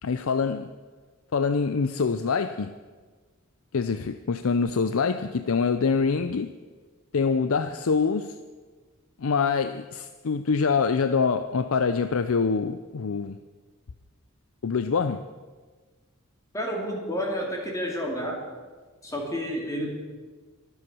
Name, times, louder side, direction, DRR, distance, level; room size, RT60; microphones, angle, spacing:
voice 1, 0.0-0.7 1.3-2.7 3.7-6.6 7.1-8.4 9.2-13.4 14.6-15.3, left 5 dB, 70° left, 0.5 m, -25 dB
voice 2, 16.5-18.4 19.0-19.9, equal, 15° left, 2.8 m, -30 dB
24.0 x 8.1 x 6.1 m
head